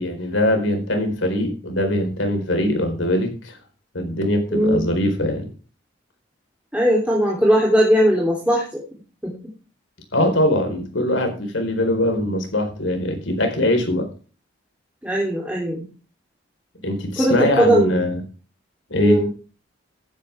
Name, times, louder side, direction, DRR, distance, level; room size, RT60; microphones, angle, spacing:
voice 1, 0.0-3.6 3.9-5.5 10.1-14.1 16.8-18.2 18.9-19.2, left 1 dB, 90° left, 5 dB, 4.4 m, -22 dB
voice 2, 4.5-4.9 6.7-8.8 9.2-9.3 15.0-15.9 17.2-18.0 19.0-19.3, equal, 5° right, -4 dB, 3.3 m, -19 dB
15.0 x 10.5 x 3.6 m, 0.36 s
head